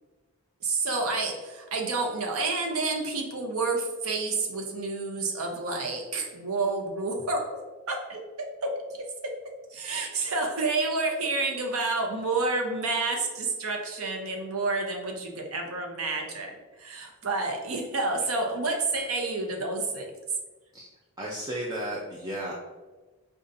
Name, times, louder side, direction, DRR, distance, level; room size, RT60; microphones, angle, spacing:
voice 1, 0.6-7.6 7.9-8.8 9.7-20.1, right 3 dB, 80° right, 2 dB, 0.7 m, -29 dB
voice 2, 21.2-22.5, right 1 dB, 20° right, -4 dB, 0.4 m, -33 dB
5.2 x 2.3 x 2.6 m, 1.3 s
head